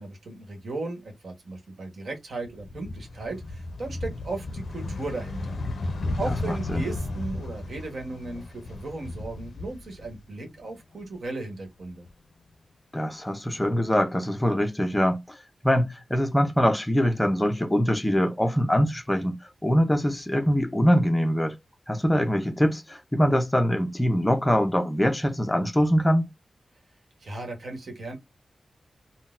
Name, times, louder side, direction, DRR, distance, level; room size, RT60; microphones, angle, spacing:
voice 1, 0.0-5.6 6.2-12.1 27.2-28.2, right 2 dB, 60° right, 1.2 m, -36 dB
sound 1, 2.4-10.6 10.9-12.1, left 2 dB, 60° left, 0.4 m, -34 dB
voice 2, 6.5-6.8 12.9-15.2 15.6-19.3 19.6-21.5 21.9-26.3, equal, 10° left, 0.5 m, -23 dB
3.8 x 2.1 x 2.5 m
wide cardioid pair, 160°, 0 cm